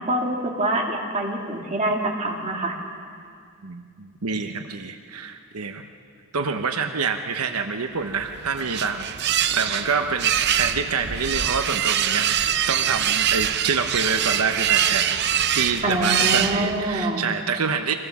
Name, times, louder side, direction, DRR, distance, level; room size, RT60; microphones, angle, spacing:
voice 1, 0.0-2.7 15.8-17.3, right 1 dB, 30° right, -1 dB, 2.5 m, -25 dB
voice 2, 3.6-5.9 6.3-9.1 9.5-15.2 15.5-17.9, right 5 dB, 85° right, 6 dB, 0.9 m, -27 dB
sound 1, 8.1-17.0, right 10 dB, 50° right, 0.6 m, -24 dB
24.5 x 16.5 x 7.3 m, 2.3 s
head